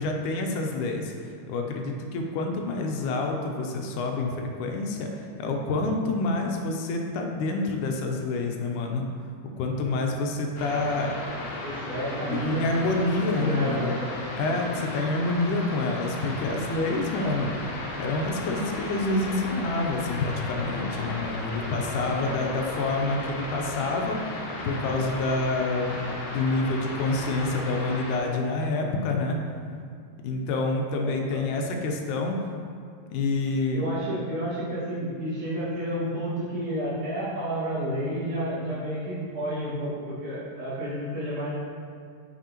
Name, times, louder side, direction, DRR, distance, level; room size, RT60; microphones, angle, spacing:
voice 1, 0.0-9.1 9.6-11.2 12.3-13.9 14.4-24.2 24.6-29.4 30.2-32.4 33.1-33.9, left 2 dB, 90° left, 2 dB, 2.1 m, -27 dB
sound 1, 10.6-28.2, left 2 dB, 70° left, 1.9 m, -35 dB
voice 2, 11.6-12.6 13.4-14.2 14.4-14.6 22.0-22.3 31.0-31.4 33.7-41.5, equal, 75° right, -9 dB, 3.3 m, -31 dB
6.5 x 6.0 x 2.9 m, 2.2 s
omnidirectional pair, 3.5 m